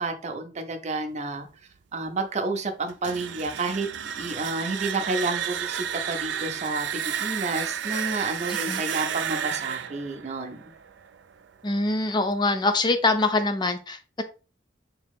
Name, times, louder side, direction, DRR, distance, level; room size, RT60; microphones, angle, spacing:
voice 1, 0.0-1.5 1.9-3.9 4.2-10.7, right 3 dB, 40° right, 5 dB, 0.6 m, -30 dB
sound 1, 2.9-11.7, right 9 dB, 80° right, 0.4 m, -32 dB
voice 2, 11.6-14.2, left 2 dB, 25° left, 8 dB, 0.5 m, -24 dB
3.6 x 2.9 x 3.5 m, 0.34 s
head